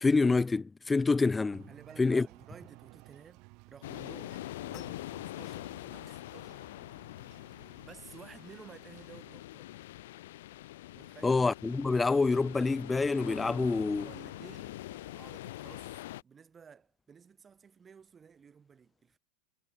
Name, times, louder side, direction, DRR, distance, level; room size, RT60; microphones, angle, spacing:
voice 1, 0.0-1.7 2.0-2.3 11.2-14.1, left 3 dB, 10° left, 0.3 m, -27 dB
sound 1, 1.5-9.2, right 29 dB, 50° right, 2.6 m, -58 dB
voice 2, 1.7-6.7 7.8-9.7 10.9-11.4 14.0-19.2, right 6 dB, 20° right, 2.1 m, -54 dB
sound 2, 3.4-3.6 4.0-9.9 10.2-10.4 10.7-15.7, left 16 dB, 40° left, 7.1 m, -66 dB
sound 3, 3.8-16.2, left 16 dB, 75° left, 0.6 m, -44 dB
supercardioid pair, 145°, 0 cm